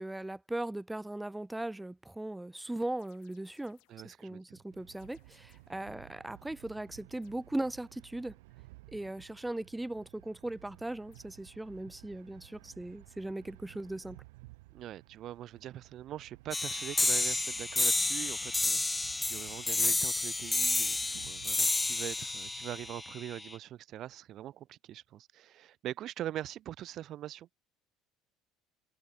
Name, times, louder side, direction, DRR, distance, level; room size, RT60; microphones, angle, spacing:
voice 1, 0.0-3.8 4.0-8.3 8.9-14.2, right 1 dB, 10° right, 0.9 m, -38 dB
sound 1, 3.0-4.1 5.0-5.9 7.2-7.6 11.1-11.5, left 26 dB, 75° left, 6.0 m, -70 dB
voice 2, 3.9-4.6 14.7-18.8 19.3-27.5, right 12 dB, 55° right, 1.0 m, -43 dB
sound 2, 4.7-22.9, right 22 dB, 85° right, 5.1 m, -56 dB
sound 3, 16.5-23.5, left 2 dB, 15° left, 0.5 m, -30 dB
supercardioid pair, 95°, 0 cm